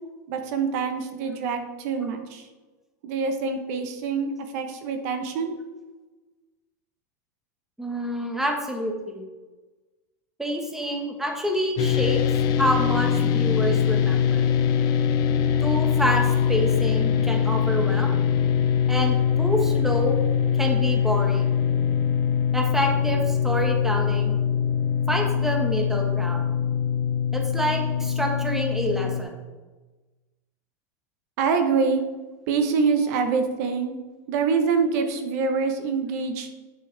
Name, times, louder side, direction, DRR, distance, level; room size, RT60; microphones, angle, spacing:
voice 1, 0.3-2.5 3.0-5.6 31.4-32.0 32.5-34.0 34.3-36.5, right 5 dB, 65° right, 6 dB, 1.0 m, -25 dB
voice 2, 7.8-9.2 10.4-12.2 12.6-14.5 15.6-18.2 18.9-20.2 20.6-21.5 22.5-24.4 25.1-26.4 27.3-29.4, equal, 5° right, 2 dB, 1.3 m, -27 dB
sound 1, 11.8-29.2, left 8 dB, 45° left, 0.6 m, -23 dB
8.4 x 6.2 x 3.3 m, 1.2 s
supercardioid pair, 120°, 9 cm